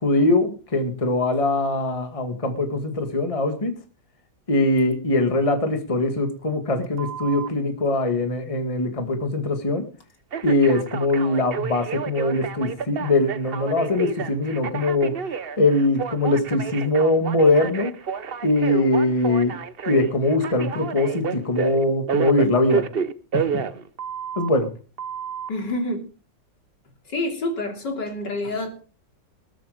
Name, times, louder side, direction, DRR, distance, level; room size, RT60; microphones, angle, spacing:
voice 1, 0.0-3.7 4.5-9.8 10.4-15.2 15.6-17.9 18.4-19.5 19.9-22.8 23.3-23.4 24.4-24.7, left 2 dB, 20° left, 6 dB, 1.9 m, -22 dB
Telephone, 7.0-7.5 10.3-24.5 25.0-25.5, right 7 dB, 50° right, 0.7 m, -30 dB
voice 2, 25.5-26.0 27.1-28.8, left 2 dB, 65° left, 3 dB, 3.8 m, -27 dB
20.5 x 8.3 x 5.1 m, 0.38 s
omnidirectional pair, 2.0 m